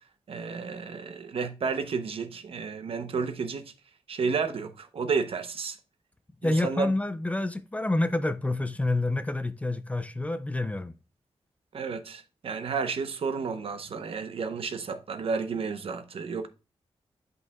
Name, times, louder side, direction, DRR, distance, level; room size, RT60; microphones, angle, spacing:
voice 1, 0.3-3.7 4.1-5.8 6.4-6.9 11.7-16.5, right 5 dB, 65° right, 0.8 m, -31 dB
voice 2, 6.4-10.9, left 2 dB, 15° left, 0.4 m, -28 dB
8.1 x 5.4 x 2.3 m
wide cardioid pair, 130°, 10 cm